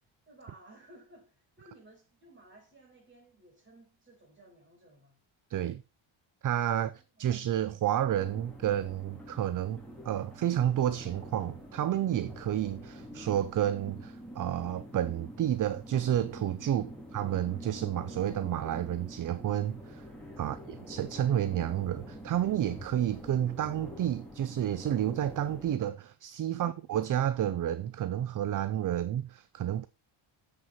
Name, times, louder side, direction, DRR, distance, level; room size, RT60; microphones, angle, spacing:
voice 1, 0.3-5.2 6.7-7.3 16.9-17.0, right 1 dB, 20° right, 5.3 m, -57 dB
voice 2, 5.5-5.8 6.4-20.0 20.4-29.9, right 11 dB, 40° right, 0.4 m, -30 dB
sound 1, 8.2-25.8, equal, ahead, 2.7 m, -46 dB
7.5 x 6.5 x 5.6 m
cardioid pair, 145°, 50 cm